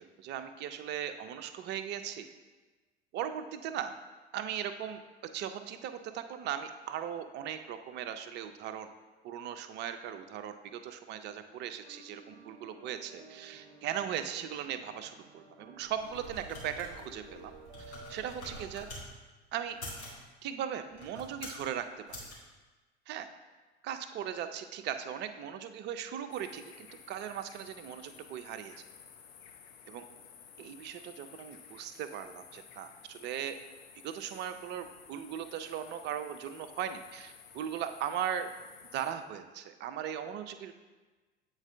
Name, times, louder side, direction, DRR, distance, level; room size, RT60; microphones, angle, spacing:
voice 1, 0.2-2.3 3.1-3.9 4.3-5.0 5.3-8.9 9.2-17.5 18.1-18.9 19.5-19.8 20.4-22.2 23.1-23.3 23.8-28.7 29.9-30.0 30.6-33.6 34.0-38.5 38.9-40.9, right 9 dB, 35° right, 8 dB, 0.5 m, -38 dB
sound 1, 11.8-18.9, right 3 dB, 50° right, 0.8 m, -54 dB
sound 2, 15.8-19.1 19.7-20.2 20.9-21.7 22.1-22.4, left 1 dB, 85° left, 1.9 m, -46 dB
sound 3, 26.3-39.1, left 7 dB, 65° left, 0.7 m, -54 dB
8.1 x 3.8 x 3.3 m, 1.3 s
figure-of-eight pair, 75°, 33 cm